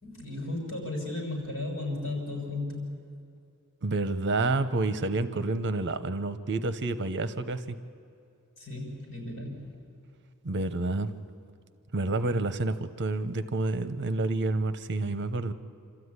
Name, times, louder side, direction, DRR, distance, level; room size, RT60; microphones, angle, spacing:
voice 1, 0.0-3.0 8.6-9.8, left 2 dB, 65° left, 1 dB, 6.7 m, -35 dB
voice 2, 3.8-7.8 10.4-11.1 11.9-15.5, right 2 dB, 55° right, 12 dB, 0.9 m, -29 dB
27.0 x 13.5 x 9.7 m, 2.5 s
head